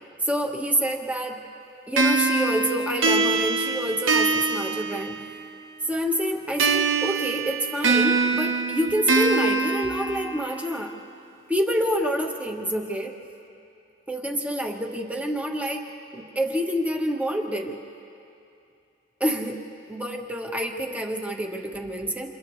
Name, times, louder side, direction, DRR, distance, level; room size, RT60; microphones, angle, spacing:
voice 1, 0.2-1.4 1.9-5.4 5.9-10.9 11.5-13.1 14.1-15.9 16.1-17.8 19.2-19.6 19.9-22.3, equal, 5° right, 1 dB, 1.3 m, -27 dB
sound 1, 2.0-5.6 6.6-10.6, right 4 dB, 80° right, 1.0 m, -24 dB
29.5 x 28.0 x 3.2 m, 2.7 s
head